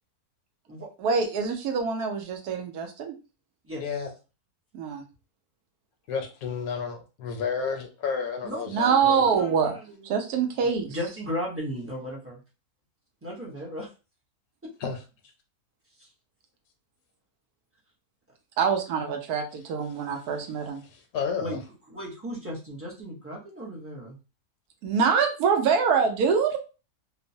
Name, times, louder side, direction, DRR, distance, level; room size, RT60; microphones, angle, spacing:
voice 1, 1.0-3.1 4.7-5.0 8.7-9.8 10.0-10.9 18.6-20.8 24.8-26.6, right 6 dB, 85° right, 3 dB, 1.1 m, -25 dB
voice 2, 6.1-9.2 14.8-15.0 20.9-21.6, left 6 dB, 75° left, 5 dB, 1.0 m, -31 dB
voice 3, 8.4-12.4 13.2-13.9 14.6-14.7 16.0-16.1 19.0-19.2 21.4-21.6 21.9-24.2, equal, 15° right, -5 dB, 0.4 m, -36 dB
2.9 x 2.1 x 2.6 m, 0.31 s
omnidirectional pair, 1.6 m